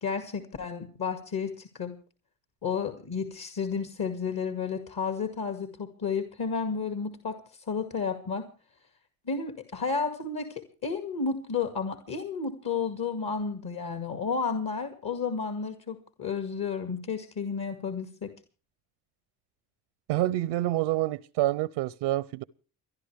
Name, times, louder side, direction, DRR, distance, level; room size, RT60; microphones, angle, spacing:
voice 1, 0.0-2.0 2.6-7.4 7.7-8.5 9.3-18.3, left 5 dB, 55° left, 2.2 m, -32 dB
voice 2, 20.1-22.4, right 16 dB, 85° right, 0.6 m, -27 dB
29.0 x 11.0 x 3.4 m
supercardioid pair, 65°, 45 cm